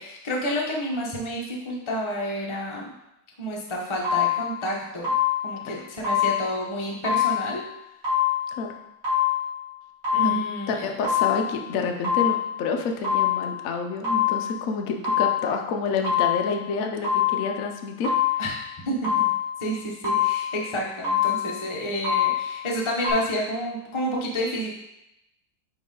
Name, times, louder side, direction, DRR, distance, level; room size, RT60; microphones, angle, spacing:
voice 1, 0.0-2.9 3.4-5.1 5.4-7.6 10.1-10.9 18.4-18.6 18.8-19.2 19.6-24.7, equal, 35° left, -2 dB, 0.4 m, -29 dB
sound 1, 4.0-4.6 5.0-5.6 6.0-6.6 7.0-7.6 8.0-8.6 9.0-9.6 10.0-10.6 11.0-11.6 12.0-12.6 13.0-13.6 14.0-14.6 15.0-15.6 16.0-16.6 17.0-17.6 18.0-18.6 19.0-19.6 20.0-20.6 21.0-21.6 22.0-22.6 23.0-23.1, left 9 dB, 40° right, 2.4 m, -24 dB
voice 2, 10.7-18.1, left 5 dB, 85° left, 4 dB, 0.7 m, -28 dB
8.8 x 3.1 x 3.8 m, 0.88 s
omnidirectional pair, 2.2 m